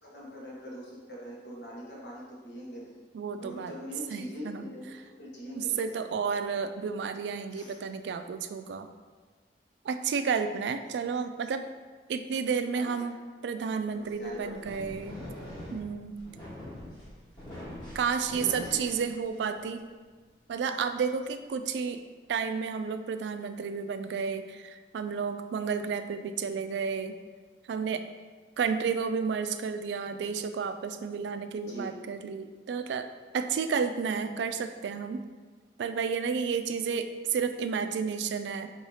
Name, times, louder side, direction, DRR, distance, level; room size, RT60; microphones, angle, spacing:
voice 1, 0.0-2.9 3.4-5.9 7.5-7.8 12.6-13.1 14.0-14.8 18.3-18.8 31.7-31.9, equal, 75° left, -5 dB, 1.2 m, -42 dB
voice 2, 3.1-3.7 4.1-4.7 5.6-8.9 9.8-11.7 12.1-13.2 13.4-15.2 15.7-16.2 17.9-19.9 20.5-22.0 22.3-27.1 27.7-28.0 28.6-33.1 33.3-35.2 35.8-38.7, right 6 dB, 85° right, 9 dB, 0.3 m, -31 dB
sound 1, 14.1-19.7, left 1 dB, 25° left, 1.2 m, -43 dB
3.9 x 2.7 x 4.8 m, 1.4 s
head